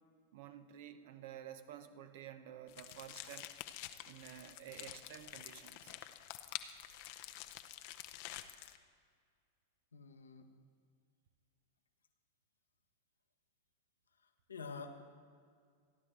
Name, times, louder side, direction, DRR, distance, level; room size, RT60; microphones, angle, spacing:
voice 1, 0.3-3.6 4.0-6.0, right 10 dB, 55° right, 10 dB, 0.9 m, -51 dB
sound 1, 2.7-8.8, left 14 dB, 50° left, 0.7 m, -49 dB
voice 2, 9.9-10.5 14.2-15.0, left 4 dB, 80° left, 6 dB, 1.1 m, -48 dB
28.0 x 10.5 x 3.3 m, 2.1 s
figure-of-eight pair, 95°, 0 cm